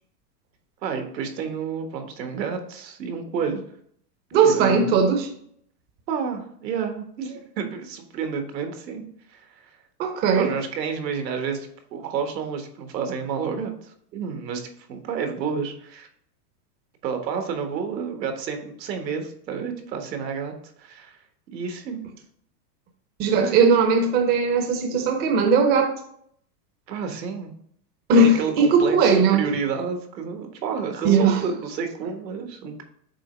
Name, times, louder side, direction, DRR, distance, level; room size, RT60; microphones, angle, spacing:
voice 1, 0.8-3.6 4.4-5.0 6.1-9.0 9.3-9.7 10.3-16.1 17.0-20.5 20.8-21.2 21.5-22.0 23.3-23.7 26.9-27.5 28.1-32.8, right 6 dB, 85° right, 1.5 m, -30 dB
voice 2, 4.3-5.3 10.0-10.5 23.2-25.9 28.1-29.5 31.0-31.4, right 4 dB, 20° right, 0.6 m, -18 dB
7.4 x 3.0 x 4.4 m
supercardioid pair, 145°, 49 cm